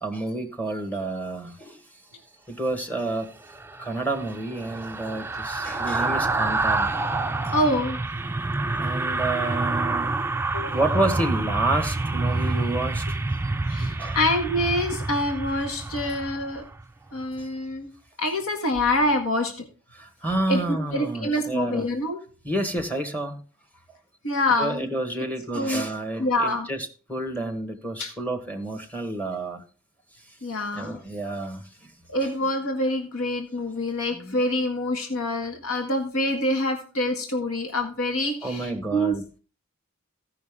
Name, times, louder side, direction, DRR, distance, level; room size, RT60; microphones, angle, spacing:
voice 1, 0.0-1.8 2.5-3.3 3.8-6.9 8.8-10.1 10.7-13.1 13.7-14.2 19.9-21.9 22.4-23.4 24.6-29.6 30.7-31.6 38.4-39.2, right 2 dB, 5° left, 1.4 m, -29 dB
sound 1, 3.5-16.8 17.2-17.4, right 2 dB, 10° right, 0.4 m, -28 dB
voice 2, 7.5-8.0 10.5-10.8 13.7-16.6 17.1-17.9 18.2-19.5 20.5-22.2 24.2-24.9 25.5-25.9 26.2-26.7 28.0-28.1 30.4-31.0 32.1-39.2, left 1 dB, 80° left, 1.8 m, -26 dB
16.5 x 5.8 x 3.6 m
head